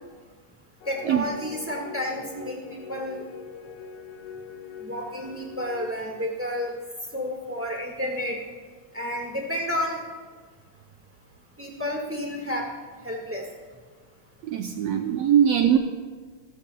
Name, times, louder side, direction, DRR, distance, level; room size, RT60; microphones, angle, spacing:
sound 1, 0.8-5.9, left 6 dB, 45° left, 1.5 m, -42 dB
voice 1, 0.9-3.3 4.8-6.8 7.1-8.4 8.9-10.0 11.6-12.7 13.0-13.5, left 1 dB, 10° right, -2 dB, 0.6 m, -31 dB
voice 2, 14.4-15.8, right 9 dB, 80° right, 5 dB, 1.6 m, -21 dB
25.5 x 14.5 x 2.3 m, 1.5 s
omnidirectional pair, 3.5 m